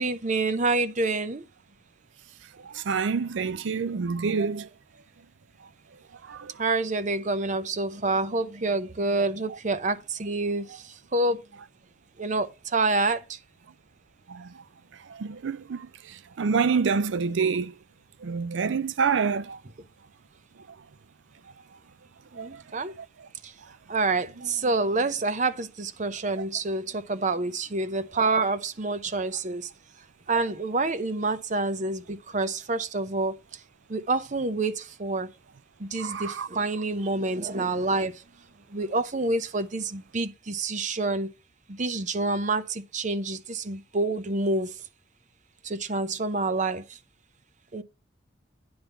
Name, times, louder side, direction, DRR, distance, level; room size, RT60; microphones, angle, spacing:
voice 1, 0.0-1.4 6.6-11.4 12.2-13.4 22.3-22.9 23.4-23.5 23.9-29.7 30.3-33.4 33.9-35.3 35.8-38.2 38.7-41.3 41.7-44.7 45.6-46.8 47.7-47.8, right 3 dB, 40° right, 0.7 m, -27 dB
voice 2, 2.7-4.7 6.3-6.5 14.3-14.5 15.1-15.9 16.4-17.7 18.2-19.6 22.4-22.5 26.4-26.5 36.0-36.5, right 5 dB, 75° right, 0.5 m, -27 dB
9.7 x 3.6 x 6.8 m
head